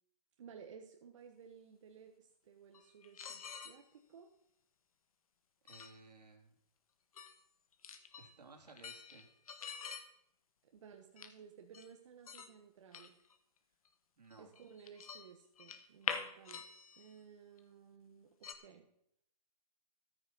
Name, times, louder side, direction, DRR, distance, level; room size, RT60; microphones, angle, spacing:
voice 1, 0.4-4.3 10.7-13.2 14.4-16.6 17.0-18.9, right 7 dB, 50° right, 3 dB, 1.4 m, -57 dB
sound 1, 2.7-3.8 5.7-5.9 7.2-7.4 7.7-8.3 8.7-10.0 11.2-11.3 11.7-11.9 12.3-12.5 12.9-13.3 13.9-14.0 14.3-15.2 15.6-17.2 17.6-17.7 18.4-18.5, left 6 dB, 60° left, 1.5 m, -45 dB
voice 2, 5.6-6.5 8.2-9.3 14.2-14.5, right 3 dB, 75° right, 4 dB, 3.2 m, -58 dB
13.5 x 9.3 x 5.6 m, 0.75 s
hypercardioid pair, 150°, 21 cm